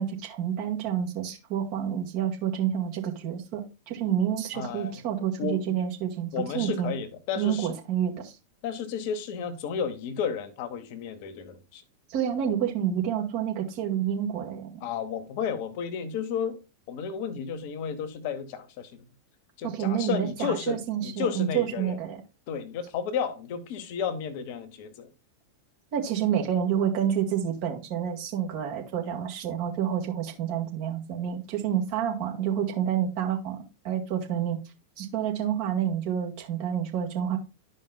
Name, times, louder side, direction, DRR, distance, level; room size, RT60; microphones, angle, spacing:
voice 1, 0.0-6.9 7.4-8.4 12.1-14.8 19.6-22.2 25.9-34.6 35.0-37.4, right 9 dB, 45° right, 2.1 m, -29 dB
voice 2, 4.5-5.0 5.4-5.8 6.3-7.8 8.6-11.8 14.8-16.6 16.9-19.0 19.6-22.0 22.5-25.1, left 7 dB, 45° left, 1.0 m, -32 dB
12.0 x 5.3 x 2.3 m
figure-of-eight pair, 90°, 0 cm